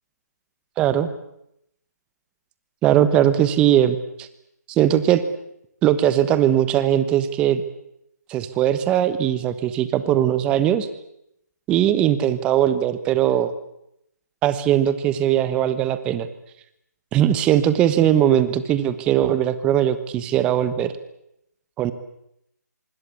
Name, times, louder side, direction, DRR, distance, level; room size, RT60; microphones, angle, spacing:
voice 1, 0.8-1.1 2.8-4.3 4.7-5.2 5.8-7.6 8.3-10.9 11.7-13.5 14.4-16.3 17.1-20.9 21.8-21.9, right 11 dB, 10° right, 13 dB, 1.1 m, -19 dB
25.0 x 25.0 x 8.4 m, 0.78 s
figure-of-eight pair, 160°, 10 cm